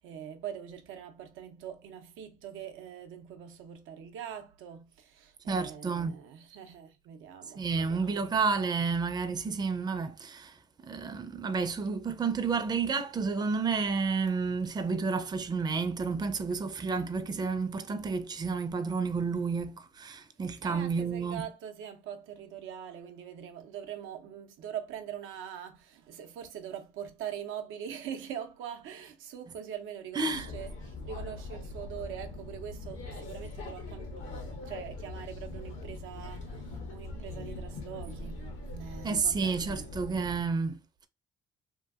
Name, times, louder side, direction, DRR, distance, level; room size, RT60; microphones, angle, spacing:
voice 1, 0.0-8.3 20.6-39.9, right 9 dB, 90° right, 0.5 m, -43 dB
voice 2, 5.5-6.1 7.6-21.5 30.1-30.5 39.0-41.1, right 4 dB, 20° right, 0.4 m, -31 dB
sound 1, 30.3-40.4, left 2 dB, 85° left, 1.0 m, -42 dB
2.7 x 2.6 x 2.3 m
cardioid pair, 90°, 20 cm